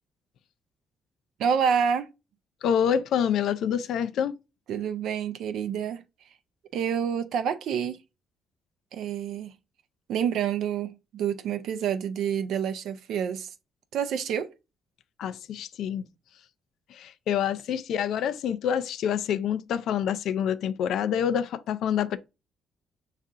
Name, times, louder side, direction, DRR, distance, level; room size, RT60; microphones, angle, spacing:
voice 1, 1.4-2.1 4.7-6.0 6.7-8.0 8.9-9.5 10.1-13.5 13.9-14.5, right 7 dB, 80° right, 0.4 m, -28 dB
voice 2, 2.6-4.4 15.2-16.1 16.9-22.2, left 8 dB, 75° left, 0.4 m, -27 dB
5.4 x 2.4 x 3.6 m
cardioid pair, 90°, 0 cm